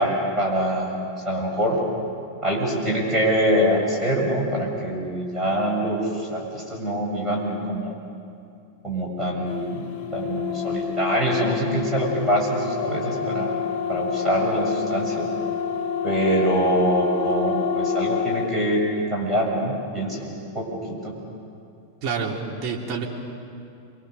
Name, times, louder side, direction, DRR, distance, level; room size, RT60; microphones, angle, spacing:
voice 1, 0.0-1.8 2.4-7.9 8.8-9.8 10.1-13.5 13.9-15.3 16.0-18.8 19.1-21.1, equal, 5° right, -3 dB, 7.7 m, -24 dB
sound 1, 9.5-18.5, left 6 dB, 40° left, 3.3 m, -27 dB
voice 2, 22.0-23.0, right 5 dB, 40° right, -2 dB, 3.8 m, -28 dB
28.5 x 23.5 x 7.0 m, 2.5 s
figure-of-eight pair, 90°, 0 cm